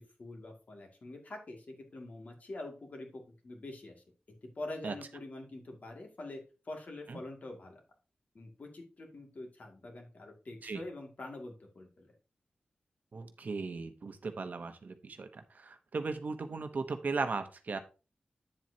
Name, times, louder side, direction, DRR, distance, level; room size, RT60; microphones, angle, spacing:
voice 1, 0.0-4.0 4.6-7.8 8.3-12.1, left 2 dB, 50° left, 2 dB, 2.2 m, -45 dB
voice 2, 13.1-17.8, right 4 dB, 55° right, 8 dB, 0.9 m, -37 dB
9.1 x 7.4 x 2.8 m, 0.32 s
wide cardioid pair, 130°, 3 cm